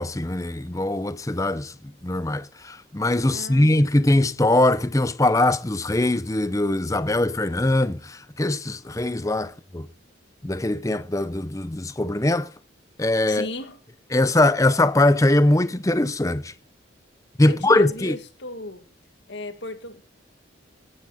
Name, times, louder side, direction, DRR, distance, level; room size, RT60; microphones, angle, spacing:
voice 1, 0.0-1.7 2.0-9.9 10.4-12.5 13.0-13.5 14.1-16.5 17.4-18.2, left 1 dB, 15° left, 0.6 m, -21 dB
voice 2, 3.3-3.9 13.3-13.8 17.4-18.8 19.3-20.0, left 2 dB, 60° left, 1.9 m, -36 dB
18.5 x 9.6 x 4.2 m
head